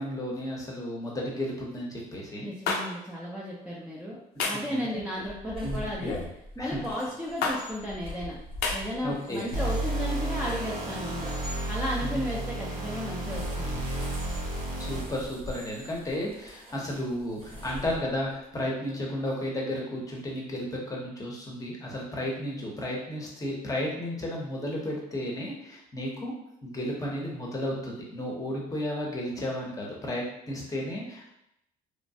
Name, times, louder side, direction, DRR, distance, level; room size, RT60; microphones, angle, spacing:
voice 1, 0.0-2.5 4.3-5.1 5.6-5.9 6.6-6.9 9.0-9.5 12.0-12.3 14.8-26.3 26.6-31.3, left 1 dB, 20° left, -3 dB, 0.8 m, -33 dB
voice 2, 2.4-6.2 6.6-8.4 8.7-11.4 11.7-13.9, equal, 5° right, -7 dB, 0.5 m, -34 dB
sound 1, 2.7-2.8 4.4-4.7 6.0-6.3 7.4-7.6 8.6-8.8, left 4 dB, 75° left, 0.5 m, -28 dB
sound 2, 5.2-11.6 13.2-18.4, equal, 35° right, 0.9 m, -43 dB
sound 3, 9.5-15.3, right 1 dB, 90° right, 0.8 m, -32 dB
3.1 x 2.2 x 2.7 m, 0.81 s
cardioid pair, 110°, 17 cm